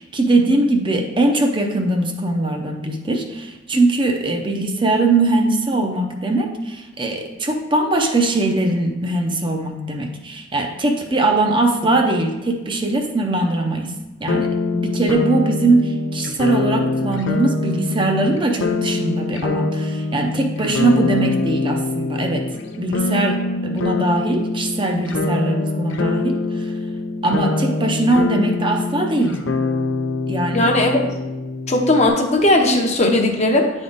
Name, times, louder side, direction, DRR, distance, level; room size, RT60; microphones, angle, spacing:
voice 1, 0.0-13.9 14.2-22.5 22.8-26.7 27.2-29.4 30.3-30.7, right 2 dB, 25° right, 2 dB, 0.5 m, -21 dB
sound 1, 14.3-32.1, left 3 dB, 75° left, 0.5 m, -24 dB
voice 2, 30.5-31.0 31.7-33.7, left 1 dB, 35° left, 2 dB, 0.7 m, -17 dB
9.5 x 3.6 x 3.9 m, 1.1 s
head